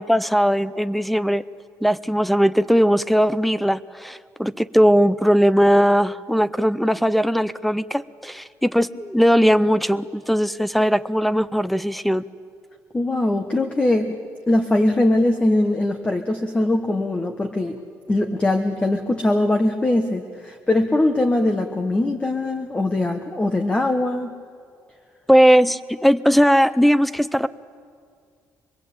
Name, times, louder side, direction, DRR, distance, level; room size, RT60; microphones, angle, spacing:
voice 1, 0.0-1.4 1.8-12.2 25.3-27.5, equal, ahead, 17 dB, 0.6 m, -19 dB
voice 2, 12.9-14.2 14.5-17.8 18.1-24.4, left 1 dB, 15° left, 5 dB, 1.3 m, -21 dB
25.5 x 22.0 x 8.7 m, 2.2 s
cardioid pair, 120°, 7 cm